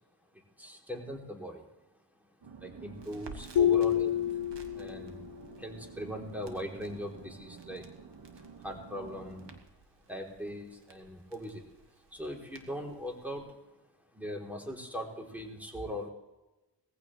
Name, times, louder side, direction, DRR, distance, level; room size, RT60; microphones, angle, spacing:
voice 1, 0.6-1.7 2.6-4.2 4.7-5.2 5.6-7.9 8.6-9.5 10.1-11.7 12.1-13.5 14.1-16.1, equal, 5° right, 0 dB, 3.6 m, -40 dB
sound 1, 2.4-9.6, right 5 dB, 55° right, 1.8 m, -50 dB
Crackle, 2.9-13.4, right 4 dB, 75° right, 1.9 m, -56 dB
sound 2, 3.6-5.3, left 10 dB, 70° left, 0.6 m, -27 dB
19.5 x 15.0 x 3.3 m, 1.0 s
cardioid pair, 70°, 43 cm